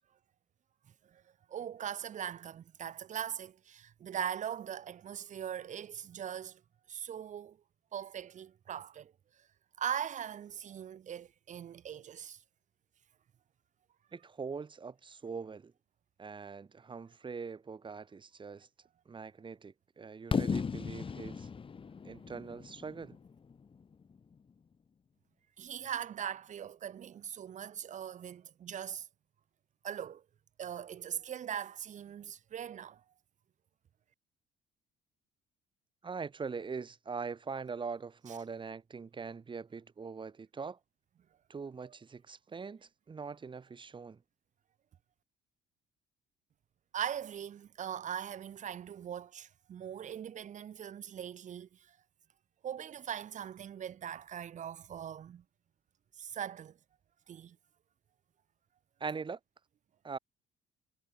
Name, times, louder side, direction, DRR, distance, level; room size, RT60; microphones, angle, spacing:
voice 1, 1.5-6.6 6.9-7.6 7.9-9.1 9.8-12.4 25.6-29.1 29.8-30.2 30.6-33.0 38.3-38.4 41.8-41.9 46.9-52.0 52.6-55.4 56.2-56.8 57.3-57.6, right 9 dB, 45° right, 1.5 m, -40 dB
voice 2, 14.1-15.7 16.2-18.7 19.1-21.5 22.0-23.2 36.0-40.8 41.5-44.2 59.0-59.4 60.0-60.2, right 5 dB, 30° right, 5.7 m, -42 dB
Fireworks, 20.3-24.2, left 5 dB, 30° left, 3.8 m, -36 dB
cardioid pair, 110°, 17 cm